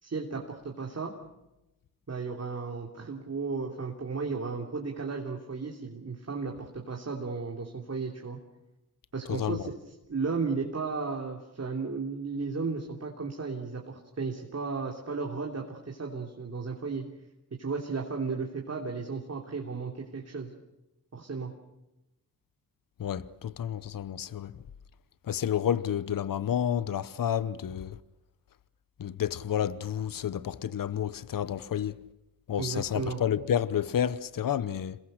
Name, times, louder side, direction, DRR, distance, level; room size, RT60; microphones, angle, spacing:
voice 1, 0.0-1.1 2.1-8.4 9.1-9.8 10.1-17.0 17.6-20.5 21.1-21.5 32.6-33.2, right 4 dB, 45° right, 3.1 m, -34 dB
voice 2, 9.3-9.7 23.0-24.6 25.2-28.0 29.0-32.0 32.5-35.0, left 9 dB, 60° left, 0.9 m, -30 dB
28.0 x 22.0 x 6.6 m
cardioid pair, 85°, 37 cm